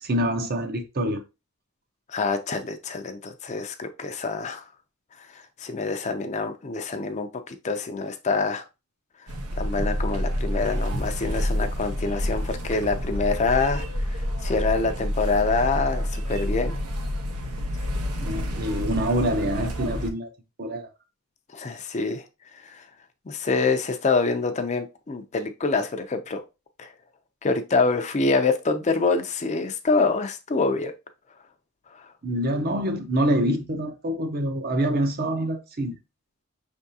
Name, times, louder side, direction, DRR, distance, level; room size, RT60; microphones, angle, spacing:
voice 1, 0.0-1.2 18.2-20.3 20.6-20.9 32.2-36.0, right 1 dB, 45° right, 0.7 m, -26 dB
voice 2, 2.1-4.6 5.3-8.6 9.6-13.8 14.1-16.8 21.5-22.2 22.6-22.8 23.3-26.4 26.8-26.9 27.4-30.9 31.9-32.0, left 4 dB, 30° left, 0.5 m, -26 dB
sound 1, 9.3-20.1, equal, 90° right, 0.9 m, -28 dB
5.4 x 3.5 x 2.7 m
head